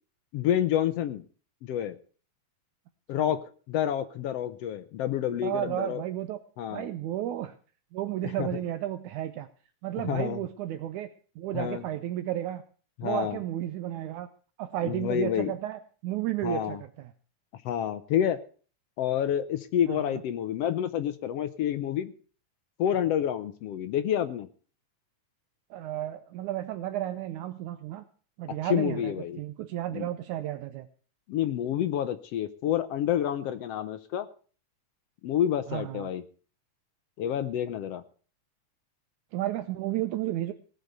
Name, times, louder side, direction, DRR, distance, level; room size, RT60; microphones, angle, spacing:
voice 1, 0.3-1.2 1.6-2.0 3.1-3.4 3.7-6.0 6.6-6.9 8.2-8.6 10.0-10.4 11.5-11.8 13.0-13.4 14.8-15.5 16.4-16.8 17.6-18.4 19.0-22.1 22.8-24.5 28.6-29.4 29.9-30.1 31.3-34.3 35.2-36.2 37.2-38.0, left 10 dB, 70° left, 11 dB, 1.5 m, -28 dB
voice 2, 5.4-6.4 6.7-7.5 7.9-9.5 9.8-11.1 11.4-12.6 13.0-14.3 14.6-17.1 19.9-20.1 25.7-28.0 28.4-30.9 35.7-36.1 39.3-40.5, right 13 dB, 75° right, 10 dB, 2.1 m, -32 dB
18.0 x 6.9 x 7.9 m, 0.41 s
omnidirectional pair, 3.6 m